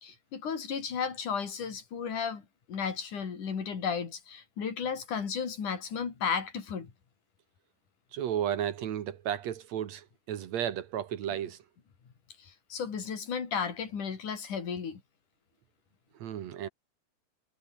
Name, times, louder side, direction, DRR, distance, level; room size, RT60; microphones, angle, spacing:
voice 1, 0.0-6.9 11.3-11.4 12.4-15.0, left 6 dB, 50° left, 5.0 m, -34 dB
voice 2, 8.1-11.6 16.1-16.7, right 10 dB, 60° right, 2.1 m, -33 dB
omnidirectional pair, 4.6 m